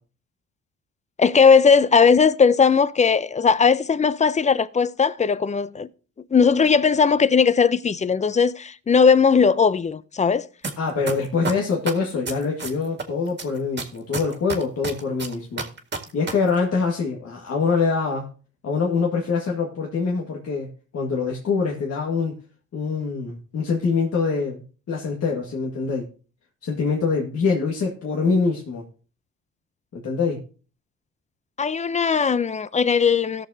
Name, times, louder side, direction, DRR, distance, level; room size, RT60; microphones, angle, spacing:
voice 1, 1.2-5.9 6.3-10.5 31.6-33.5, left 5 dB, 25° left, 0.5 m, -18 dB
sound 1, 10.6-10.7 11.1-13.0 13.4-16.3 16.6-16.7, right 4 dB, 35° right, 1.8 m, -28 dB
voice 2, 10.8-15.7 16.1-18.3 18.6-22.3 22.7-24.6 24.9-26.1 26.6-28.8 29.9-30.4, left 4 dB, 55° left, 1.7 m, -24 dB
18.0 x 6.5 x 2.8 m
cardioid pair, 90°, 30 cm